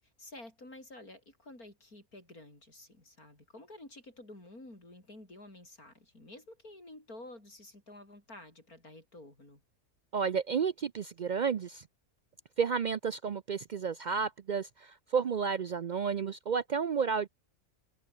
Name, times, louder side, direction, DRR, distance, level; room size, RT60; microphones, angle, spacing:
voice 1, 0.0-9.6, left 1 dB, 75° left, 8.3 m, -51 dB
voice 2, 10.1-11.8 12.6-17.3, right 6 dB, 80° right, 0.4 m, -31 dB
omnidirectional pair, 1.6 m